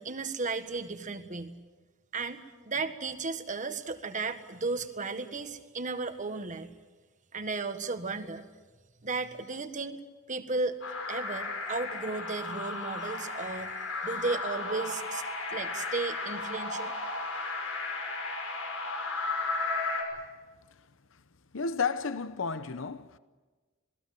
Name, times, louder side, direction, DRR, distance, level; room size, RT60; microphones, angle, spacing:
voice 1, 0.0-1.5 2.1-2.4 2.6-6.7 7.3-8.4 9.0-10.0 10.3-10.8 11.1-13.7 14.0-15.2 15.5-16.9, right 3 dB, 40° right, 1.5 m, -34 dB
sound 1, 10.8-20.0, left 3 dB, 90° left, 5.7 m, -34 dB
voice 2, 21.5-23.2, left 5 dB, 70° left, 0.9 m, -32 dB
27.0 x 19.5 x 7.7 m
head